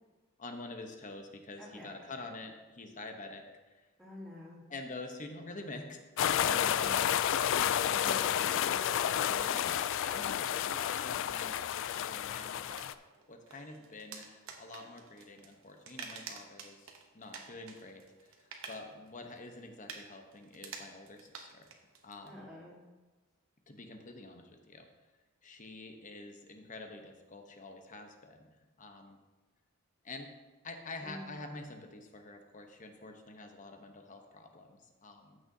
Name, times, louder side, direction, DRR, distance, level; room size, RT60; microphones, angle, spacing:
voice 1, 0.4-3.9 4.7-6.8 8.3-8.6 10.0-21.7 22.0-22.5 23.7-24.9 25.4-28.5 28.8-29.2 30.0-30.3 30.6-35.4, left 2 dB, 35° left, 4 dB, 1.0 m, -47 dB
voice 2, 1.6-1.9 4.0-4.6 6.4-7.1 7.8-9.7 22.2-22.7 31.0-31.3, left 1 dB, ahead, -7 dB, 2.8 m, -47 dB
sound 1, 6.2-12.9, left 10 dB, 60° left, 0.3 m, -31 dB
sound 2, 12.3-22.3, right 5 dB, 70° right, 1.0 m, -50 dB
14.5 x 6.3 x 2.8 m, 1.2 s
head